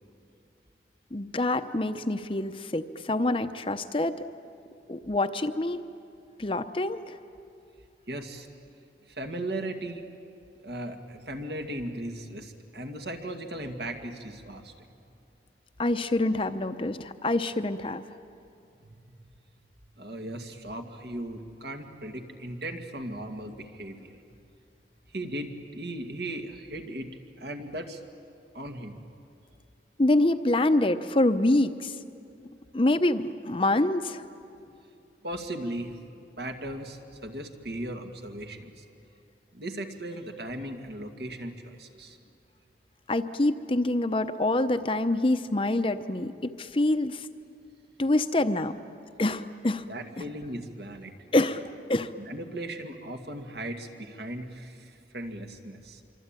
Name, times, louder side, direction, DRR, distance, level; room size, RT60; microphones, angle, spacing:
voice 1, 1.1-4.3 4.9-5.8 6.4-7.2 15.8-18.0 30.0-31.9 32.7-34.2 43.1-47.3 48.0-48.7 49.2-49.8 51.3-51.6 51.9-52.1, left 2 dB, 30° left, 9 dB, 0.7 m, -26 dB
voice 2, 8.1-8.5 9.1-10.1 10.6-14.9 18.8-18.9 20.0-24.2 25.1-27.1 27.4-28.0 28.5-29.0 35.2-38.8 39.5-42.2 49.9-51.1 52.2-56.0, right 1 dB, 70° right, 4 dB, 2.2 m, -37 dB
26.0 x 25.0 x 9.0 m, 2.6 s
head